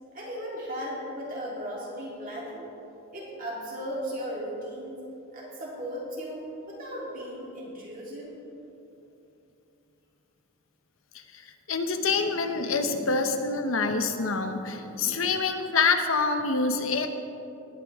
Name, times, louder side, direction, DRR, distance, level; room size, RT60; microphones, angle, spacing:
voice 1, 0.1-2.7 3.1-5.0 5.3-8.4, equal, 40° right, -5 dB, 3.3 m, -36 dB
voice 2, 11.7-17.1, left 4 dB, 70° left, 6 dB, 0.9 m, -26 dB
19.0 x 9.4 x 3.6 m, 2.9 s
head